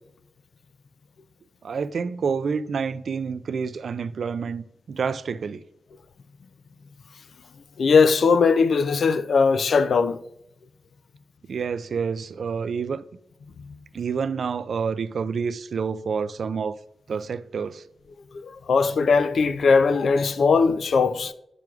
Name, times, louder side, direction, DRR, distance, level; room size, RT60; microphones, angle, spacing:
voice 1, 1.6-5.6 11.5-13.0 13.9-16.8 17.1-17.8, right 5 dB, 60° right, 0.3 m, -28 dB
voice 2, 7.8-10.2 18.3-21.3, left 5 dB, 60° left, 0.4 m, -19 dB
9.0 x 5.9 x 2.4 m
wide cardioid pair, 170°, 0 cm